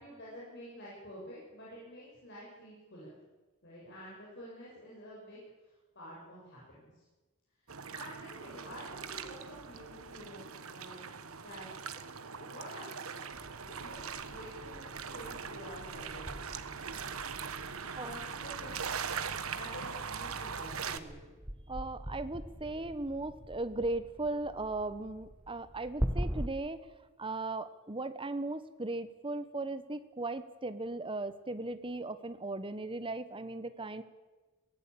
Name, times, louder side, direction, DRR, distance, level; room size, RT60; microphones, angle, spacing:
voice 1, 0.0-3.2 3.6-5.4 6.0-6.9 7.9-11.0 11.4-11.9 12.4-13.2 13.7-16.4 17.9-18.9 19.5-21.3, equal, 55° left, -6 dB, 7.4 m, -49 dB
sound 1, 7.7-21.0, right 6 dB, 90° right, 1.3 m, -41 dB
sound 2, 11.9-12.1 12.4-12.5 13.7-14.3 15.1-15.6 17.1-17.2 17.5-17.6 17.8-18.2 18.6-18.9, equal, 35° left, 3.2 m, -60 dB
sound 3, 13.3-26.5, equal, 10° right, 1.1 m, -43 dB
voice 2, 21.7-26.8 27.2-34.0, right 2 dB, 25° right, 12 dB, 1.2 m, -37 dB
23.5 x 17.5 x 8.7 m, 1.2 s
head